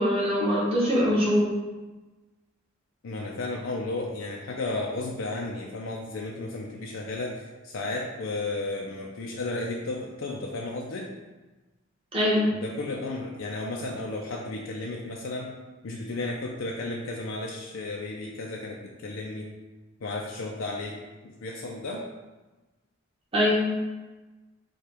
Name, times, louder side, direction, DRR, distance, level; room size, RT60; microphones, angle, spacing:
voice 1, 0.0-1.5 12.1-12.5 23.3-23.6, equal, 25° right, -6 dB, 1.1 m, -23 dB
voice 2, 3.0-11.1 12.5-15.5 15.8-19.5 20.0-22.1, left 2 dB, 65° left, -2 dB, 0.5 m, -33 dB
4.9 x 2.4 x 4.4 m, 1.2 s
head